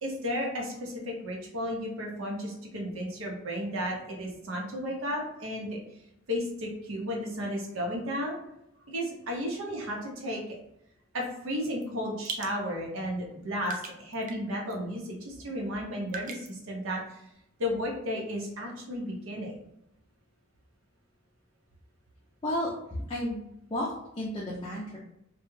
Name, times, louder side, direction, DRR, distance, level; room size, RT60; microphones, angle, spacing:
voice 1, 0.0-5.8 6.3-8.4 8.9-10.6 11.1-17.2 17.6-19.5, equal, 85° right, 0 dB, 0.7 m, -33 dB
sound 1, 11.7-11.8 12.2-12.5 13.2-13.3 13.7-14.4 14.7-14.8 16.1-16.5, right 4 dB, 40° right, 0.3 m, -38 dB
voice 2, 22.4-23.4 23.7-25.0, left 1 dB, 25° left, -5 dB, 0.4 m, -32 dB
2.2 x 2.0 x 3.1 m, 0.79 s
head